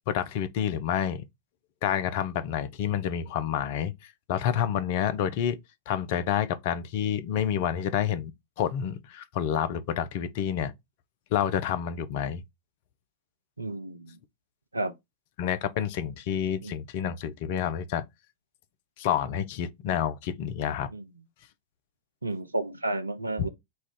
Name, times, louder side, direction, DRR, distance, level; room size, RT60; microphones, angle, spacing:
voice 1, 0.1-1.2 1.8-5.6 5.9-8.3 8.6-10.7 11.3-12.4 15.4-18.0 19.0-20.9 23.4-23.5, left 9 dB, 50° left, 0.5 m, -28 dB
voice 2, 13.6-14.2 14.7-14.9 16.6-16.7 20.9-21.1 22.2-23.5, right 2 dB, 80° right, 0.5 m, -32 dB
4.2 x 2.4 x 3.7 m
figure-of-eight pair, 90°, 0 cm